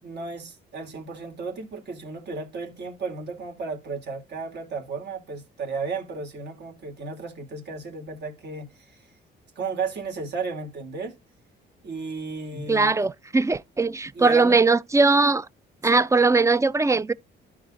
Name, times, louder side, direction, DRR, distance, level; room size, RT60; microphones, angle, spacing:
voice 1, 0.0-9.0 9.6-11.2 11.8-13.0 14.1-14.6 15.8-16.0, right 4 dB, 60° right, 2.9 m, -34 dB
voice 2, 12.7-15.5 15.8-17.1, right 3 dB, 15° right, 0.3 m, -20 dB
12.5 x 4.9 x 2.5 m
cardioid pair, 90°, 20 cm